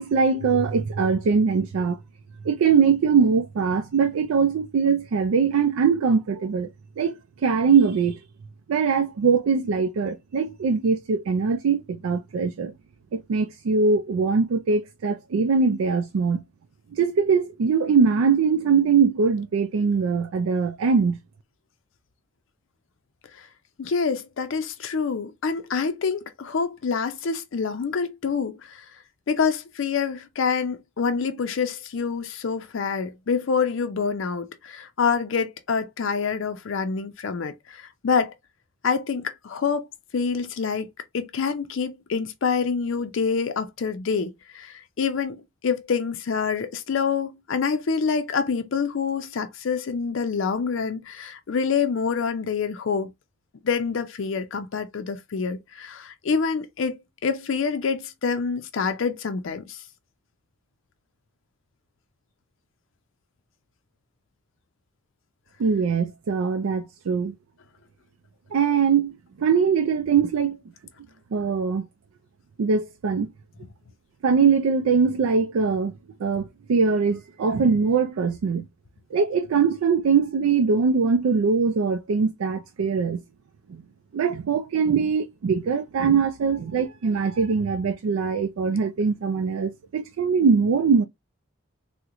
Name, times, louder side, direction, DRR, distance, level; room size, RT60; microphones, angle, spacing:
voice 1, 0.0-2.0 2.4-6.7 7.0-8.2 8.7-12.7 13.1-16.4 16.9-21.2 65.6-67.3 68.5-70.6 71.3-71.8 72.6-73.3 74.2-75.9 76.2-78.7 79.1-83.2 83.7-83.8 84.1-91.0, right 5 dB, 80° right, 0.4 m, -22 dB
voice 2, 23.8-28.8 29.3-38.3 38.8-39.8 40.1-40.9 41.1-53.1 53.6-59.8, left 5 dB, 65° left, 0.4 m, -26 dB
3.6 x 2.1 x 2.9 m
head